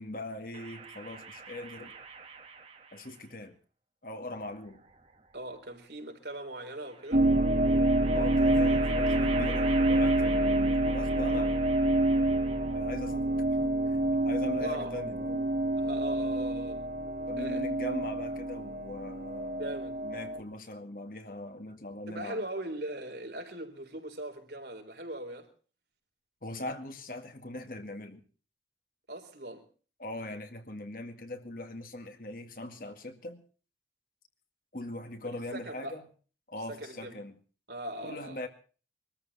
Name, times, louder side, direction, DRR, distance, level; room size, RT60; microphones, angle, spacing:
voice 1, 0.0-1.9 2.9-3.6 4.0-4.8 8.1-12.2 12.7-13.3 13.6-15.5 17.3-19.7 20.0-22.4 26.4-28.2 30.0-33.4 34.7-36.0 36.5-37.4 38.0-38.5, left 1 dB, 50° left, 2.1 m, -40 dB
sound 1, 0.5-3.2 4.3-5.3 6.9-12.9, right 5 dB, 35° right, 1.6 m, -43 dB
voice 2, 5.3-7.3 14.6-14.9 15.8-16.8 17.4-17.6 19.6-20.0 22.1-25.5 29.1-29.7 35.5-36.0 36.7-37.2 37.7-38.4, right 1 dB, 75° right, 3.9 m, -40 dB
sound 2, 7.1-20.4, right 1 dB, 55° right, 2.4 m, -27 dB
23.0 x 13.5 x 4.2 m
head